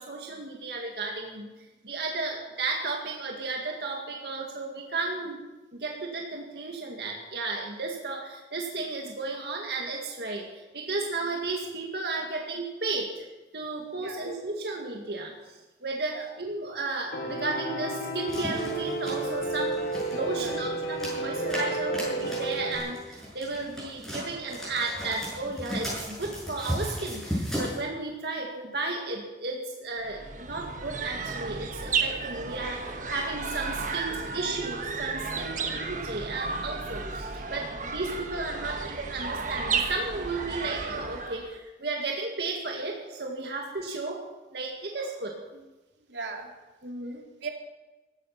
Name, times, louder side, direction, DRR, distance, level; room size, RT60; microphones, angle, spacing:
voice 1, 0.0-1.5 1.8-5.4 5.7-10.5 10.7-13.3 13.5-44.2 44.5-45.4 46.8-47.2, right 3 dB, 65° right, 0 dB, 2.1 m, -34 dB
Piano, 17.1-22.8, right 1 dB, 70° left, 3.3 m, -31 dB
sound 1, 18.3-27.8, equal, ahead, 7.9 m, -37 dB
sound 2, 30.0-41.6, right 4 dB, 45° right, 1.4 m, -33 dB
voice 2, 35.3-35.7 43.4-43.6 45.5-45.6 46.1-46.5 47.4-47.5, right 4 dB, 90° right, 2 dB, 2.8 m, -39 dB
16.5 x 14.5 x 5.8 m, 1.1 s
head